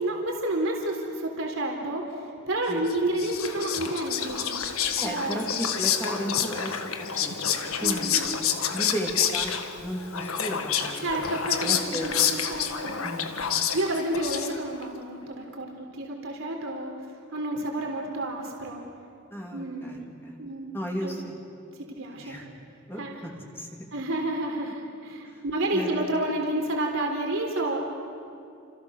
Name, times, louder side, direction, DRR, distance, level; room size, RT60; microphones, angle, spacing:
voice 1, 0.0-4.6 5.0-5.4 7.8-8.2 11.0-13.1 13.7-16.9 17.3-18.8 19.5-20.1 20.4-21.1 21.9-22.4 23.0-23.2 23.9-27.8, right 1 dB, 70° right, 1 dB, 3.8 m, -30 dB
Whispering, 2.9-14.8, left 8 dB, 85° left, 1.7 m, -28 dB
voice 2, 5.0-6.8 7.2-8.3 8.7-9.5 9.8-11.1 11.6-12.3 13.0-13.4 19.3-20.4 20.7-21.4 22.2-22.5 22.9-23.7 25.2-25.4 25.7-26.1, equal, 10° left, -1 dB, 3.2 m, -34 dB
30.0 x 28.0 x 6.7 m, 2.6 s
head